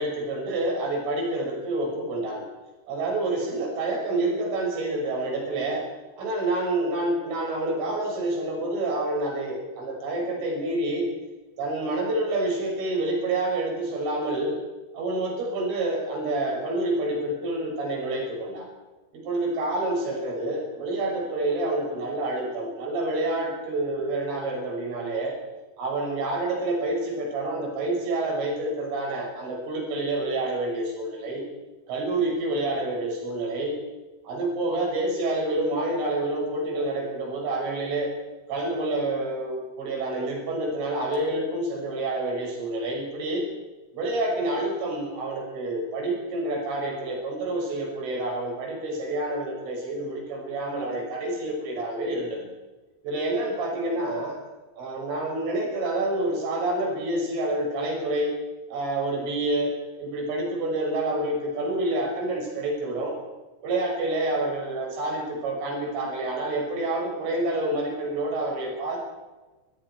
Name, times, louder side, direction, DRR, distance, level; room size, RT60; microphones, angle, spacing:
voice 1, 0.0-2.5 2.9-5.9 6.2-11.1 11.6-14.6 14.9-18.7 19.1-25.4 25.8-31.5 31.9-33.8 34.3-38.1 38.5-43.5 43.9-52.5 53.0-54.4 54.8-58.3 58.7-63.2 63.6-69.0, right 2 dB, 70° right, -1 dB, 8.9 m, -28 dB
29.5 x 22.0 x 4.8 m, 1.2 s
omnidirectional pair, 5.9 m